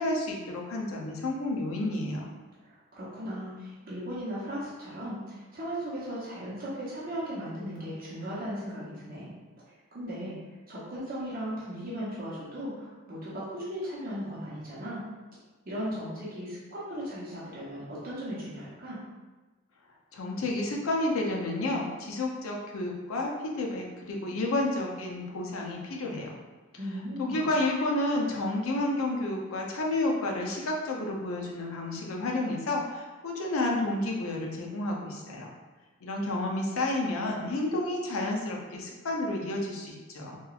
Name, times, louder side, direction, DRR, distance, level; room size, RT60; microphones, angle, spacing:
voice 1, 0.0-2.3 20.1-26.4 27.2-35.5 36.0-40.4, left 2 dB, 80° left, 0 dB, 0.5 m, -30 dB
voice 2, 2.6-9.3 9.9-10.4 10.7-15.1 15.7-19.0 26.8-27.4, equal, 45° right, -8 dB, 0.8 m, -37 dB
2.9 x 2.3 x 2.3 m, 1.2 s
head